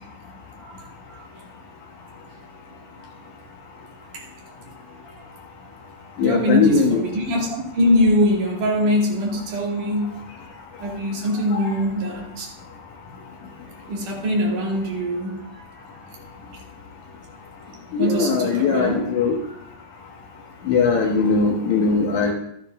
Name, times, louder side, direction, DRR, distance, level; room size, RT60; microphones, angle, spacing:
voice 1, 0.6-0.9 4.1-4.2 5.1-5.2 6.2-10.2 10.8-12.5 13.9-15.7 18.0-19.0, equal, 60° right, 3.9 m, -23 dB
voice 2, 6.2-7.0 11.5-11.7 17.9-19.4 20.7-22.3, left 5 dB, 65° left, 2.3 m, -20 dB
12.5 x 10.5 x 3.6 m
omnidirectional pair, 4.2 m